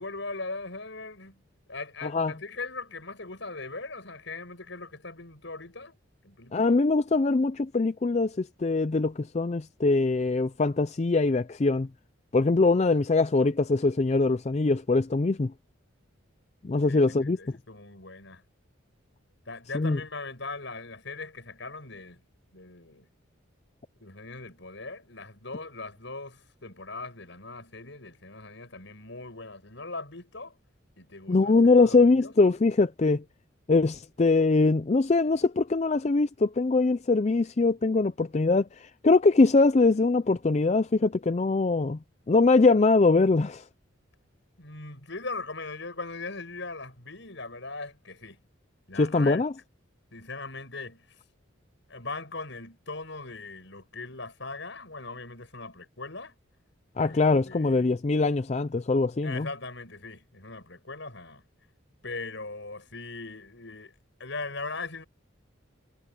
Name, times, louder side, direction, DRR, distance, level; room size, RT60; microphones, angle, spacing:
voice 1, 0.0-1.4 1.7-5.9 6.2-6.8 16.8-18.4 19.5-22.2 22.5-23.1 24.0-30.6 31.0-32.3 44.6-48.4 48.9-49.4 50.1-51.0 51.9-56.3 57.0-57.2 57.4-57.9 59.2-61.4 62.0-63.9 64.2-65.0, left 3 dB, 65° left, 6.3 m, -40 dB
voice 2, 2.0-2.3 6.5-11.9 12.3-15.5 16.6-17.4 19.7-20.0 31.3-33.2 33.7-42.0 42.3-43.6 49.0-49.5 57.0-59.5, left 3 dB, 35° left, 0.4 m, -22 dB
head